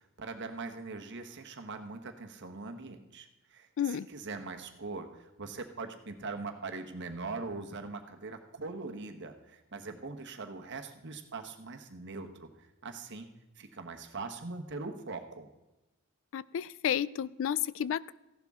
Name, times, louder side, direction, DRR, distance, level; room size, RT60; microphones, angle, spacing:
voice 1, 0.0-13.3 13.6-15.5, right 3 dB, 55° right, 6 dB, 1.2 m, -42 dB
voice 2, 16.3-18.1, left 9 dB, 60° left, 20 dB, 0.3 m, -31 dB
15.0 x 11.0 x 3.7 m, 1.0 s
head